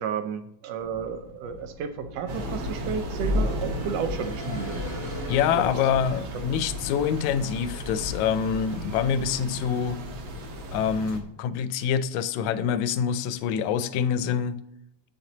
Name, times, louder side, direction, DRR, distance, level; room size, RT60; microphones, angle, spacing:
voice 1, 0.0-4.8 5.6-5.7, right 7 dB, 75° right, 8 dB, 1.5 m, -32 dB
sound 1, 0.8-6.3, left 1 dB, 30° right, 1.4 m, -41 dB
Thunder / Rain, 2.3-11.2, left 1 dB, 55° right, 1.6 m, -33 dB
voice 2, 5.3-10.0 10.7-14.6, left 7 dB, 80° left, 13 dB, 1.9 m, -26 dB
8.3 x 6.0 x 3.9 m, 0.78 s
omnidirectional pair, 3.4 m